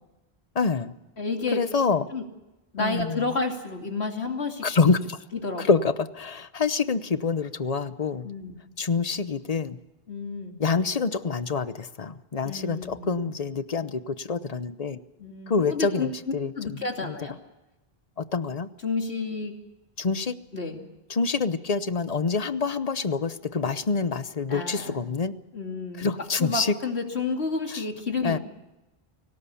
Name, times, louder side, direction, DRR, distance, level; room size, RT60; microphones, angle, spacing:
voice 1, 0.5-0.9 1.5-2.0 2.8-3.2 4.6-5.0 5.6-8.3 8.8-9.8 10.6-15.0 15.5-16.8 17.0-17.1 18.2-18.7 20.0-20.3 21.1-25.3 26.0-26.7 27.7-27.8 28.2-28.4, left 4 dB, 40° left, 13 dB, 0.9 m, -26 dB
voice 2, 1.2-1.6 2.1-2.2 2.7-5.0 5.3-5.9 8.2-8.6 10.1-10.6 12.4-13.3 15.2-17.4 18.8-19.5 20.5-20.9 24.5-25.1 25.5-26.1 26.4-28.4, left 3 dB, 90° left, 3 dB, 2.9 m, -31 dB
24.5 x 18.5 x 7.1 m, 1.0 s
omnidirectional pair, 1.1 m